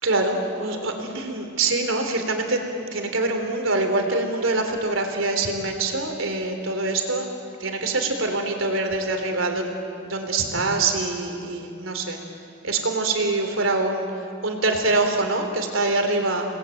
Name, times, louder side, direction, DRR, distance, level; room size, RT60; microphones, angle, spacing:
voice 1, 0.0-2.6 2.9-7.3 7.6-9.7 10.0-12.2 12.6-14.1 14.4-16.5, right 2 dB, 85° right, 4 dB, 3.5 m, -24 dB
29.0 x 20.0 x 9.2 m, 2.5 s
head